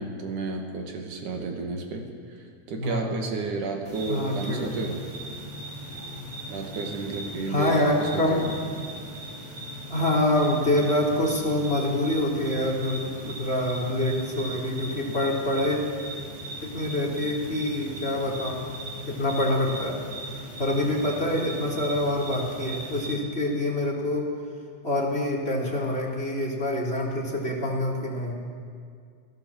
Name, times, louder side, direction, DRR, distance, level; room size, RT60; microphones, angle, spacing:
voice 1, 0.0-5.0 6.5-8.5, right 3 dB, 80° right, 3 dB, 3.9 m, -32 dB
voice 2, 2.8-3.1 4.1-4.9 7.5-8.5 9.9-15.8 16.6-18.7 19.0-20.0 20.3-24.3 24.8-28.4, left 1 dB, 20° left, 0 dB, 3.6 m, -26 dB
sound 1, 3.8-23.1, right 1 dB, 15° right, 5.4 m, -38 dB
28.0 x 17.5 x 7.6 m, 2.2 s
omnidirectional pair, 3.5 m